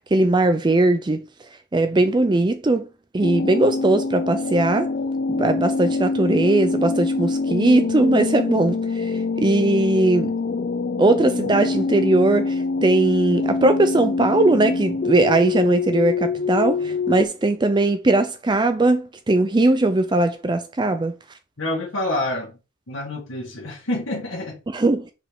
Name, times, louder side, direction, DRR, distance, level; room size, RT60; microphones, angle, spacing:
voice 1, 0.1-1.2 1.7-2.9 3.1-4.9 5.3-10.3 11.0-21.1 24.7-25.1, right 2 dB, 20° right, 0.4 m, -19 dB
sound 1, 3.2-17.3, left 4 dB, 45° left, 0.4 m, -25 dB
voice 2, 21.6-22.5 22.9-24.6, left 1 dB, 75° left, 1.4 m, -27 dB
5.7 x 5.1 x 3.6 m
head